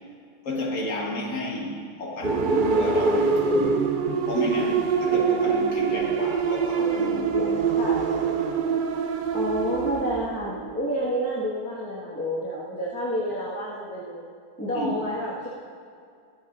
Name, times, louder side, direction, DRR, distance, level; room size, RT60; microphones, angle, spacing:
voice 1, 0.4-3.9 4.3-7.6 14.7-15.0, left 1 dB, 60° left, -2 dB, 2.0 m, -31 dB
sound 1, 2.2-10.9, right 5 dB, 55° right, 0.5 m, -24 dB
voice 2, 9.3-14.2 14.6-15.5, equal, 10° left, -8 dB, 1.6 m, -29 dB
24.0 x 8.2 x 2.5 m, 2.3 s
omnidirectional pair, 1.5 m